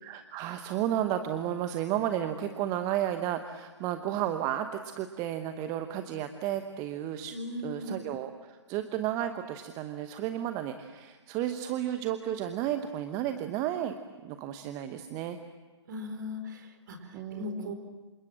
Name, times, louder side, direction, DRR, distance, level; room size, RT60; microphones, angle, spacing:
voice 1, 0.0-7.4 7.6-14.0 14.2-15.4 17.1-17.7, right 11 dB, 20° right, 8 dB, 1.1 m, -32 dB
voice 2, 7.3-8.0 15.9-17.0 17.3-17.7, left 2 dB, 40° right, 7 dB, 4.3 m, -38 dB
28.0 x 26.0 x 7.5 m, 1.3 s
figure-of-eight pair, 130°, 15 cm